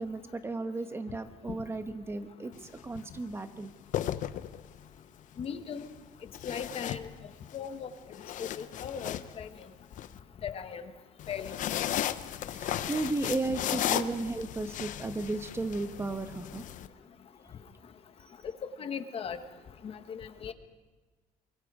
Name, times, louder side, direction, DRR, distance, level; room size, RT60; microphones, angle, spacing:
voice 1, 0.0-3.7 12.5-16.6, right 2 dB, 15° right, 9 dB, 1.1 m, -34 dB
sound 1, 2.5-2.8 3.7-4.9 6.3-7.6 8.0-10.1 11.2-16.9, left 11 dB, 55° left, 0.8 m, -35 dB
voice 2, 5.4-5.9 6.4-7.1 7.5-7.9 8.4-9.5 10.4-10.8 11.3-11.5 18.4-19.4 19.8-20.5, left 7 dB, 40° left, 9 dB, 1.3 m, -38 dB
24.5 x 23.0 x 4.9 m, 1.3 s
cardioid pair, 150°, 16 cm